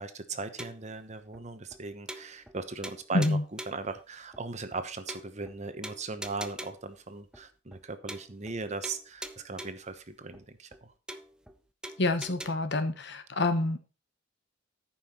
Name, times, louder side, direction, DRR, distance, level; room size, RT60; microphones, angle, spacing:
voice 1, 0.0-3.4 3.7-10.9, right 3 dB, 35° right, 1.0 m, -38 dB
sound 1, 0.6-0.9 1.3-1.4 1.7-1.8 2.1-2.6 2.8-3.9 4.3-4.4 4.7-4.8 5.1-5.6 5.8-6.9 7.3-7.4 7.7-7.8 8.1-8.6 8.8-9.9 10.3-10.4 10.7-10.8 11.1-11.6 11.8-12.5, right 1 dB, 5° right, 0.6 m, -43 dB
voice 2, 3.1-3.4 12.0-13.8, left 2 dB, 60° left, 1.1 m, -27 dB
13.5 x 5.6 x 4.3 m
head